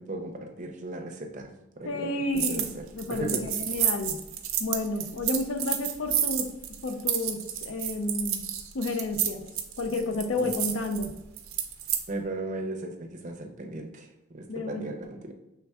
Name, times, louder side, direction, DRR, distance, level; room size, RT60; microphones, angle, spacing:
voice 1, 0.0-2.7 3.1-3.4 10.4-10.5 12.1-14.1 14.3-15.3, right 2 dB, 35° right, 3 dB, 0.5 m, -36 dB
voice 2, 1.8-4.2 4.6-6.5 6.8-8.4 8.7-9.4 9.8-11.1 14.5-15.0, left 2 dB, 70° left, 5 dB, 0.5 m, -31 dB
sound 1, 2.4-2.7 3.0-12.0, right 10 dB, 90° right, 0.5 m, -30 dB
5.3 x 3.4 x 2.3 m, 0.93 s
head